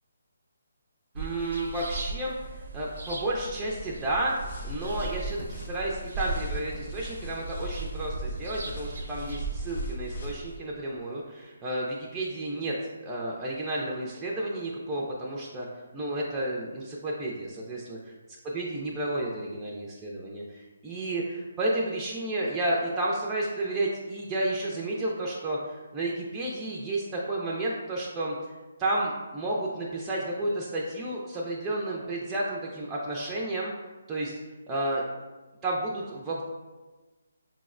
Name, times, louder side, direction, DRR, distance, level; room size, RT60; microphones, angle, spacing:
voice 1, 1.2-12.7 13.0-15.7 15.9-18.0 18.5-28.4 28.8-33.7 34.1-34.3 34.7-35.0 35.6-36.4, right 1 dB, 15° right, -4 dB, 0.3 m, -31 dB
sound 1, 1.2-9.7, right 3 dB, 70° right, 0.5 m, -38 dB
sound 2, 3.6-10.6, equal, 60° left, 0.6 m, -40 dB
5.1 x 2.0 x 2.4 m, 1.2 s
hypercardioid pair, 155°, 0 cm